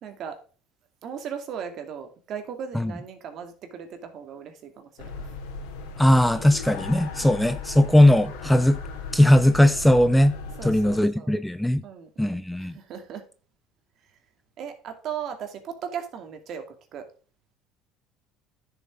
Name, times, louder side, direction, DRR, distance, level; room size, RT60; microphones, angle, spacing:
voice 1, 0.0-0.4 1.0-5.3 7.2-7.7 10.6-11.4 11.8-13.3 14.6-17.1, right 8 dB, 55° right, 2.4 m, -37 dB
sound 1, 5.0-11.0, left 4 dB, 90° left, 2.5 m, -37 dB
voice 2, 6.0-8.8 9.1-10.4 10.6-11.8 12.2-12.7, left 1 dB, 5° left, 0.6 m, -19 dB
10.5 x 6.8 x 3.6 m
supercardioid pair, 110°, 0 cm